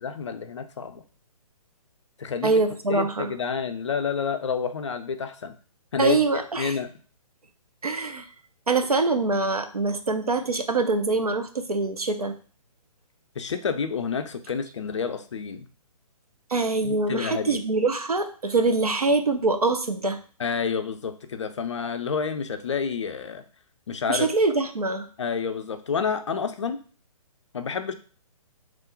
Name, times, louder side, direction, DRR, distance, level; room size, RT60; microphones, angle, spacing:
voice 1, 0.0-1.0 2.2-2.5 2.9-5.5 5.9-6.2 6.6-6.9 13.4-15.7 16.8-17.6 20.4-23.4 23.9-24.3 25.2-26.8 27.5-27.9, left 6 dB, 55° left, 9 dB, 0.4 m, -29 dB
voice 2, 2.4-3.3 6.0-6.7 7.8-8.3 8.7-12.3 16.5-20.2 24.1-25.1, right 3 dB, 85° right, 7 dB, 0.5 m, -24 dB
3.0 x 2.0 x 3.8 m, 0.40 s
figure-of-eight pair, 130°, 19 cm